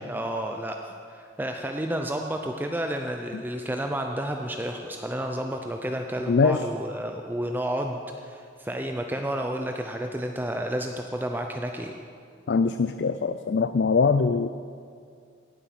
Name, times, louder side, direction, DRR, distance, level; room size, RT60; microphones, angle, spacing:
voice 1, 0.1-12.0, right 1 dB, 10° right, 3 dB, 0.5 m, -31 dB
voice 2, 6.3-6.6 12.5-14.5, left 4 dB, 60° left, 11 dB, 0.4 m, -22 dB
17.5 x 7.9 x 6.1 m, 2.3 s
head